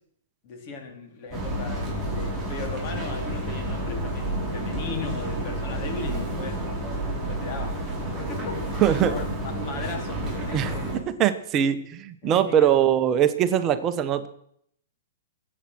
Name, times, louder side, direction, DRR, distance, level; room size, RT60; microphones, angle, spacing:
voice 1, 0.4-6.6 7.1-7.8 8.3-11.1 12.2-12.7, left 3 dB, 40° left, 4 dB, 3.7 m, -37 dB
sound 1, 1.3-11.0, right 1 dB, 10° right, 7.1 m, -30 dB
voice 2, 8.8-9.2 10.5-14.3, right 10 dB, 25° right, 10 dB, 1.0 m, -22 dB
22.5 x 8.5 x 6.2 m, 0.70 s
hypercardioid pair, 145°, 0 cm